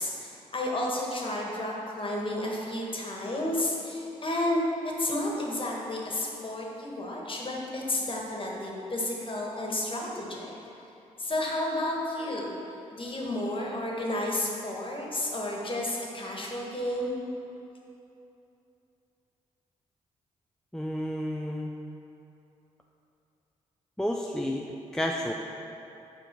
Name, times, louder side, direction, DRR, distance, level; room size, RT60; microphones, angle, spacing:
voice 1, 0.0-10.5 11.2-12.5 12.9-17.1, left 1 dB, 35° left, -1 dB, 1.5 m, -31 dB
voice 2, 20.7-21.7 24.0-24.6 24.9-25.3, equal, 5° left, 1 dB, 0.5 m, -30 dB
6.8 x 5.1 x 4.5 m, 2.9 s
supercardioid pair, 45°, 15 cm